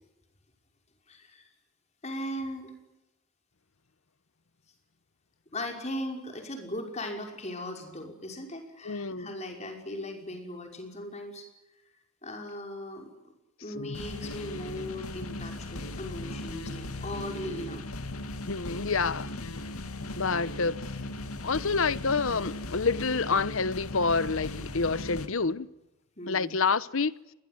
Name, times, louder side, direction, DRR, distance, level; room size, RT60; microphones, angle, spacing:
voice 1, 1.1-1.4 2.0-2.7 5.5-11.5 12.2-13.3 13.6-17.9 26.2-26.5, left 1 dB, 30° left, 5.6 m, -38 dB
voice 2, 8.8-9.3 18.5-19.3 20.2-20.8 21.4-25.7 26.3-27.1, left 4 dB, 65° left, 0.9 m, -28 dB
sound 1, 13.7-25.3, left 1 dB, 80° left, 2.4 m, -38 dB
26.0 x 21.5 x 9.5 m
head